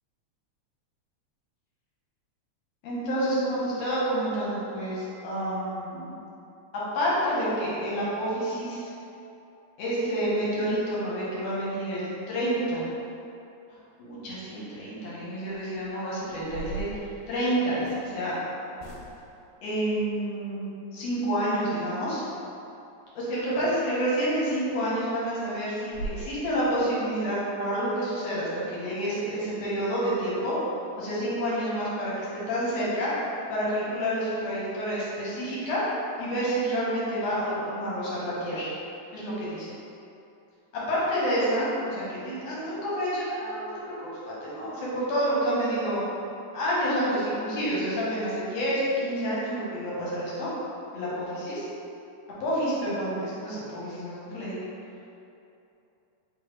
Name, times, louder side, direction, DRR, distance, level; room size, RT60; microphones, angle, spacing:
voice 1, 2.8-6.1 6.7-8.9 9.8-12.9 14.0-18.3 19.6-22.2 23.2-30.6 31.0-33.1 33.5-35.8 36.2-38.7 39.1-39.7 40.7-46.0 46.5-50.5 50.9-51.6 52.4-54.6, equal, 70° left, -7 dB, 1.9 m, -29 dB
sound 1, 15.7-15.8 16.3-18.1 18.8-19.4 24.0-24.1 24.5-24.6 25.0-25.1 25.5-25.6 25.9-26.2, right 2 dB, 85° left, 2.0 m, -39 dB
4.3 x 3.4 x 3.1 m, 2.8 s
omnidirectional pair, 3.4 m